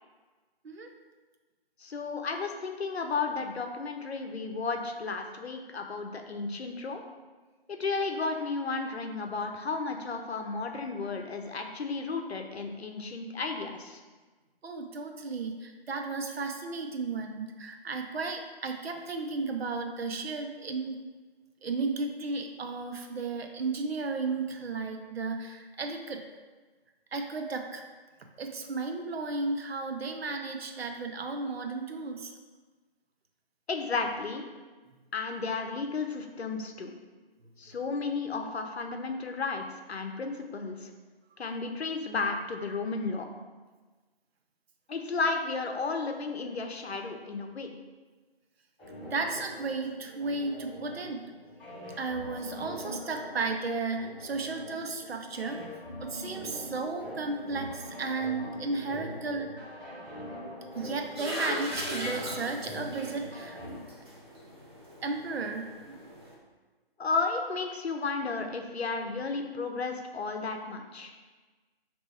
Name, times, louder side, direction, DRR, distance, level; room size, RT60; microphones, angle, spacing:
voice 1, 1.8-7.0 7.7-14.0 33.7-34.5 35.1-36.9 37.6-40.9 41.4-43.3 44.9-47.7 67.0-71.1, left 4 dB, 90° left, 4 dB, 0.7 m, -33 dB
voice 2, 14.6-21.0 21.6-26.2 27.1-27.8 28.4-32.3 49.1-51.2 52.0-55.7 56.0-59.5 60.7-63.8 65.0-65.6, right 3 dB, 75° right, 4 dB, 0.6 m, -34 dB
sound 1, 48.8-63.8, equal, 10° left, 0.8 m, -43 dB
sound 2, 60.7-66.3, equal, 25° right, 0.5 m, -39 dB
4.2 x 2.9 x 3.4 m, 1.3 s
figure-of-eight pair, 155°, 31 cm